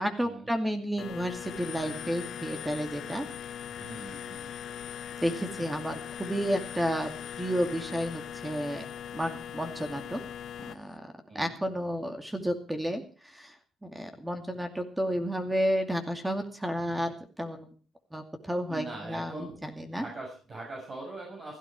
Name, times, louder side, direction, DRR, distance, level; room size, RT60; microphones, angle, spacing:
voice 1, 0.0-3.3 5.2-7.1 7.4-8.8 9.1-10.2 10.6-13.5 13.8-17.7 18.1-20.0, equal, 10° right, 5 dB, 2.4 m, -31 dB
sound 1, 1.0-10.7, left 9 dB, 70° left, 1.4 m, -40 dB
voice 2, 3.7-4.5 11.3-11.5 18.7-19.5 19.9-21.6, right 2 dB, 40° right, -2 dB, 7.3 m, -41 dB
16.5 x 13.0 x 4.8 m, 0.37 s
cardioid pair, 90°, 0 cm